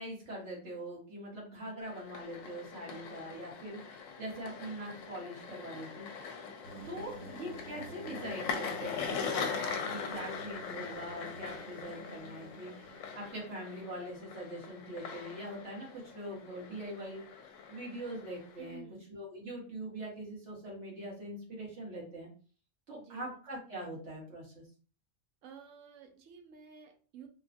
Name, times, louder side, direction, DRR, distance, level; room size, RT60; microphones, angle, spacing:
voice 1, 0.0-6.1 6.8-17.2 17.7-18.8 19.1-22.3 22.9-24.6, right 1 dB, 60° right, 1.9 m, -43 dB
sound 1, 1.8-18.8, left 6 dB, 80° left, 1.0 m, -42 dB
sound 2, 6.6-13.3, right 2 dB, 35° right, 1.1 m, -50 dB
voice 2, 6.9-7.3 18.6-19.0 22.9-23.3 25.4-27.3, right 6 dB, 80° right, 1.1 m, -52 dB
3.7 x 2.3 x 2.6 m
omnidirectional pair, 1.3 m